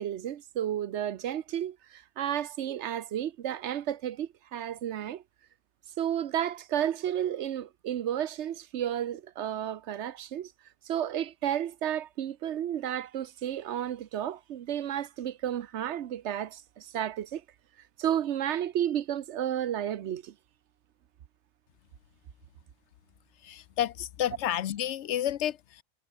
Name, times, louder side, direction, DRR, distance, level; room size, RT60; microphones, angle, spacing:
voice 1, 0.0-5.2 6.0-10.5 10.8-17.4 18.0-20.3, right 10 dB, 80° right, 1.0 m, -32 dB
voice 2, 23.4-25.8, left 11 dB, 80° left, 1.0 m, -30 dB
omnidirectional pair, 1.2 m